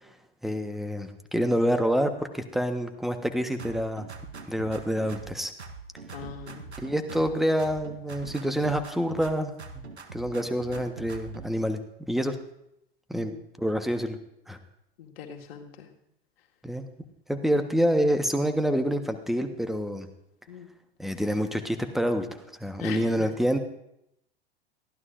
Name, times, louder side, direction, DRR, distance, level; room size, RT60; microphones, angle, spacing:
voice 1, 0.4-4.1 4.5-5.5 6.8-9.8 10.1-12.3 13.1-13.3 13.6-14.2 14.5-14.6 16.6-16.9 17.3-20.1 21.0-22.3 22.6-23.6, equal, ahead, 7 dB, 1.2 m, -27 dB
sound 1, 3.6-5.3 5.6-7.3 7.6-9.3 9.6-11.5, right 4 dB, 90° right, 1.2 m, -42 dB
voice 2, 6.1-6.7 13.2-13.4 15.0-15.9 20.5-20.7 22.8-23.3, left 9 dB, 65° left, 2 dB, 2.0 m, -41 dB
22.0 x 15.5 x 2.6 m, 0.82 s
figure-of-eight pair, 85°, 32 cm